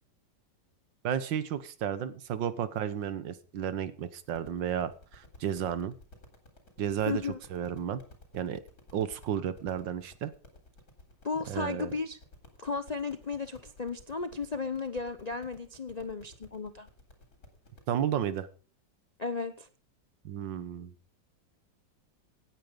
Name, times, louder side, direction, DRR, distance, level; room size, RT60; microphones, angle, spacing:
voice 1, 1.0-5.9 6.8-7.2 7.5-8.0 8.3-8.6 8.9-10.3 11.5-11.9 17.9-18.5 20.2-20.9, right 9 dB, 80° right, 14 dB, 1.8 m, -32 dB
sound 1, 4.2-17.9, left 2 dB, 55° left, 4.2 m, -56 dB
voice 2, 7.1-7.4 11.2-12.2 12.6-16.9 19.2-19.7, left 4 dB, 70° left, 10 dB, 0.3 m, -34 dB
17.0 x 9.5 x 5.2 m, 0.38 s
omnidirectional pair, 2.0 m